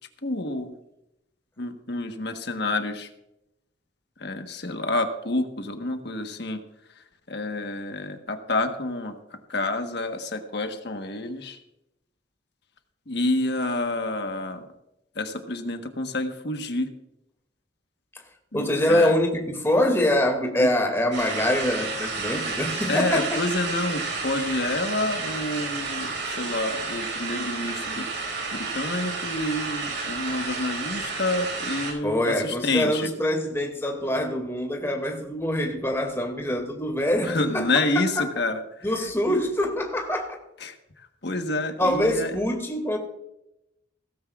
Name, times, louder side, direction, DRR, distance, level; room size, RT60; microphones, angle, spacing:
voice 1, 0.2-0.7 1.6-3.1 4.2-6.6 7.0-11.6 13.1-14.7 15.1-16.9 18.5-19.1 20.6-20.7 22.4-22.5 22.9-28.1 28.5-33.1 37.2-39.4 40.6-42.3, left 2 dB, 60° left, 1.3 m, -28 dB
voice 2, 18.5-23.4 32.0-37.7 38.2-38.3 38.8-40.4 41.8-43.0, left 1 dB, 15° left, 2.3 m, -24 dB
sound 1, 21.1-31.9, right 3 dB, 75° right, 5.2 m, -31 dB
17.0 x 15.0 x 2.4 m
head